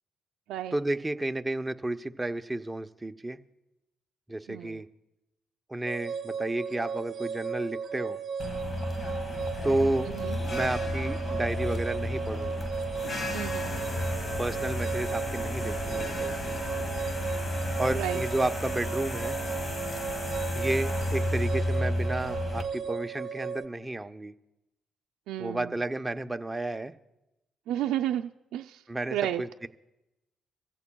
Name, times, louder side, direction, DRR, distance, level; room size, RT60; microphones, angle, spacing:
voice 1, 0.7-3.4 4.3-4.9 5.7-8.2 9.6-10.1 10.5-12.7 14.4-16.5 17.8-19.4 20.5-24.3 25.4-26.9 28.9-29.7, right 2 dB, 15° right, 8 dB, 0.6 m, -32 dB
voice 2, 4.5-4.8 10.1-10.4 13.3-13.8 17.9-18.2 25.3-25.7 27.7-28.8 29.1-29.4, right 12 dB, 90° right, 3 dB, 0.4 m, -32 dB
sound 1, 5.9-23.7, right 6 dB, 50° right, 1.1 m, -36 dB
sound 2, 8.4-22.6, left 1 dB, 35° left, 1.7 m, -32 dB
24.5 x 15.5 x 2.3 m, 0.93 s
cardioid pair, 90°, 0 cm